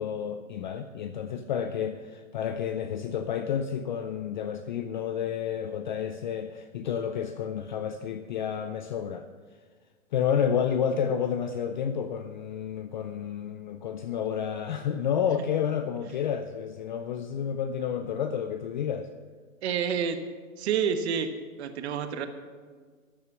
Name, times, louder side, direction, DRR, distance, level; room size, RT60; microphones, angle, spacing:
voice 1, 0.0-9.3 10.1-19.1, left 8 dB, 35° left, 9 dB, 0.5 m, -30 dB
voice 2, 19.6-20.2 20.6-21.3 21.6-22.3, right 7 dB, 50° right, 8 dB, 1.3 m, -28 dB
12.5 x 9.3 x 6.0 m, 1.5 s
hypercardioid pair, 140°, 41 cm